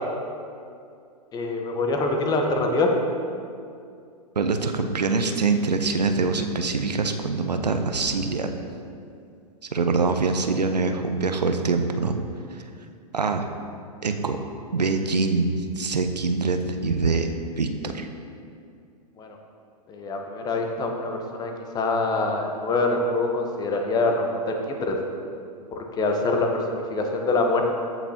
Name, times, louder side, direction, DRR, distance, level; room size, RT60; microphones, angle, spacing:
voice 1, 1.3-3.0 19.2-19.3 19.9-25.0 25.7-27.7, left 2 dB, 20° left, 3 dB, 1.0 m, -25 dB
voice 2, 4.4-8.5 9.7-12.2 12.5-12.6 13.1-13.5 14.0-14.4 14.7-18.1, right 4 dB, 80° right, 6 dB, 0.7 m, -24 dB
14.5 x 6.0 x 2.9 m, 2.4 s
figure-of-eight pair, 105°, 21 cm